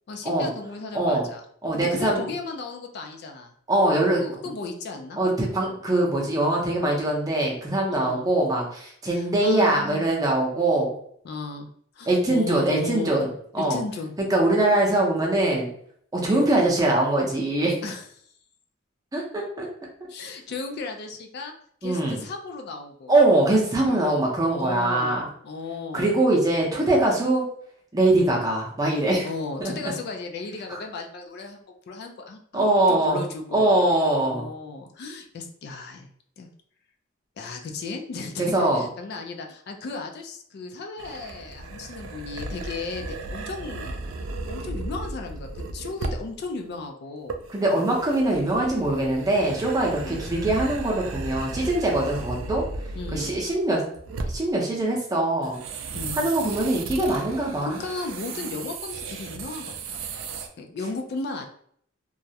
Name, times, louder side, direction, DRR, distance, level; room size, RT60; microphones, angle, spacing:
voice 1, 0.1-1.4 1.7-3.5 4.2-5.2 7.9-8.3 9.1-10.1 11.2-11.7 12.0-13.1 13.6-14.1 16.2-16.5 17.8-18.0 20.1-21.5 21.8-23.2 23.8-24.2 24.5-26.1 28.2-28.4 29.2-33.8 34.1-36.1 36.4-36.5 37.4-44.0 44.5-47.4 49.9-50.2 52.9-53.3 55.9-56.3 57.6-60.1 60.6-61.4, left 3 dB, 55° left, 4 dB, 0.3 m, -35 dB
voice 2, 0.9-1.3 1.6-2.2 3.7-4.2 5.2-10.9 12.1-13.3 13.5-13.8 14.3-15.7 16.1-17.8 19.1-19.7 21.8-22.2 23.1-25.2 25.9-27.4 27.9-29.3 29.6-29.9 30.7-30.8 32.5-33.2 33.5-34.5 38.4-38.9 47.5-52.6 53.1-53.8 54.2-55.6 56.1-57.8, right 2 dB, 20° right, -2 dB, 0.6 m, -22 dB
sound 1, 41.0-46.4 47.3-53.6 54.0-54.5 55.4-60.5, right 3 dB, 85° right, 0.3 m, -35 dB
2.3 x 2.0 x 2.7 m, 0.65 s
head